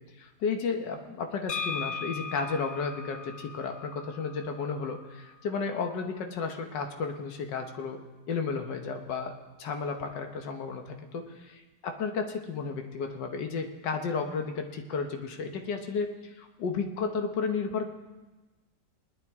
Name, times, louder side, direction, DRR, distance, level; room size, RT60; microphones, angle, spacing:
voice 1, 0.2-8.0 8.3-9.3 9.6-17.9, left 5 dB, 85° left, 4 dB, 1.7 m, -33 dB
sound 1, 1.5-5.3, left 5 dB, 65° left, 0.7 m, -38 dB
20.5 x 11.5 x 3.6 m, 1.2 s
omnidirectional pair, 1.9 m